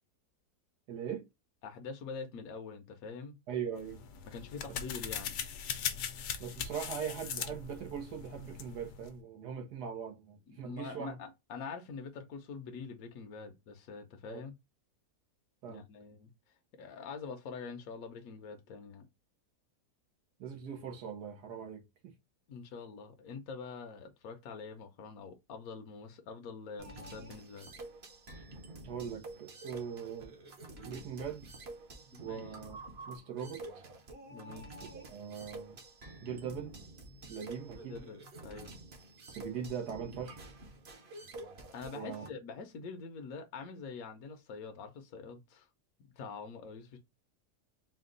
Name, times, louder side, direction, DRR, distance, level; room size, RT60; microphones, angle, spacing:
voice 1, 0.9-1.3 3.5-4.0 6.4-11.2 14.3-14.4 15.6-15.8 20.4-22.1 28.8-30.3 30.8-31.5 32.2-32.8 33.1-33.8 34.9-35.8 36.2-36.8 37.3-38.0 39.3-40.6 41.9-42.2, right 7 dB, 85° right, 1.6 m, -41 dB
voice 2, 1.6-3.4 4.3-5.4 10.5-14.5 15.7-19.0 22.5-27.7 32.2-32.4 34.3-34.7 37.1-37.2 37.8-38.8 41.7-45.7 46.0-47.0, left 5 dB, 65° left, 1.1 m, -45 dB
sound 1, 3.8-9.1, left 8 dB, 85° left, 1.3 m, -40 dB
sound 2, 26.8-42.3, right 2 dB, 45° right, 1.1 m, -49 dB
4.3 x 2.3 x 3.7 m
omnidirectional pair, 1.7 m